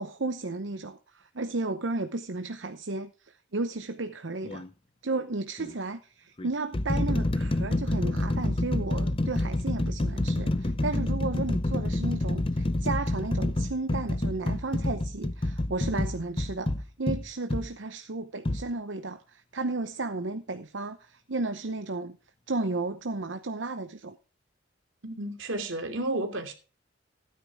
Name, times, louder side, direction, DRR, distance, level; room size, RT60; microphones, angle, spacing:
voice 1, 0.0-4.6 5.0-16.7 17.0-22.2 22.5-24.2, right 3 dB, 70° right, 0.8 m, -33 dB
sound 1, 4.4-4.7 5.6-5.7 6.4-17.7 18.4-18.6, left 1 dB, 30° left, 0.7 m, -28 dB
voice 2, 25.0-26.5, right 2 dB, 85° right, 2.8 m, -32 dB
15.5 x 9.7 x 3.6 m
head